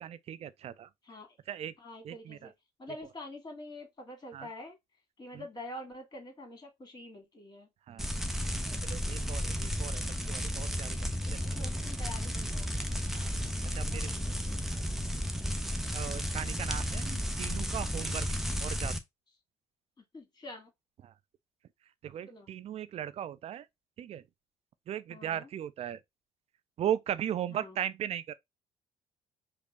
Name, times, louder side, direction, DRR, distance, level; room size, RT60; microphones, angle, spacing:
voice 1, 0.0-0.9 1.5-1.7 2.0-2.5 2.9-3.0 4.3-4.5 5.3-5.5 7.9-8.0 8.8-11.0 11.6-11.7 13.1-14.1 14.7-14.8 15.9-18.3 18.6-18.9 22.0-23.6 24.0-24.2 24.9-26.0 26.8-28.4, right 10 dB, 40° right, 0.5 m, -37 dB
voice 2, 1.0-1.4 1.8-2.5 2.8-4.8 5.2-7.7 8.4-8.8 11.2-12.7 13.8-14.7 20.0-20.7 22.3-22.5 25.1-25.5 27.5-27.8, left 1 dB, 25° left, 2.0 m, -46 dB
sound 1, 8.0-19.0, equal, ahead, 0.8 m, -33 dB
5.0 x 2.1 x 4.0 m
figure-of-eight pair, 50°, 16 cm